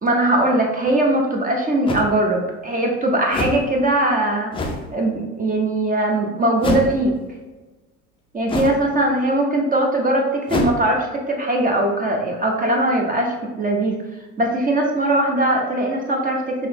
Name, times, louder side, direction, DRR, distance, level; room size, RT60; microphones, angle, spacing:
voice 1, 0.0-7.1 8.3-14.0 14.4-16.5, right 1 dB, 20° right, 1 dB, 0.8 m, -20 dB
sound 1, 0.9-1.0 1.9-2.1 3.3-3.7 4.5-4.9 6.6-7.0 8.5-8.9 10.5-10.8, left 2 dB, 10° left, 0.4 m, -25 dB
5.6 x 3.1 x 2.7 m, 1.2 s
figure-of-eight pair, 65°, 47 cm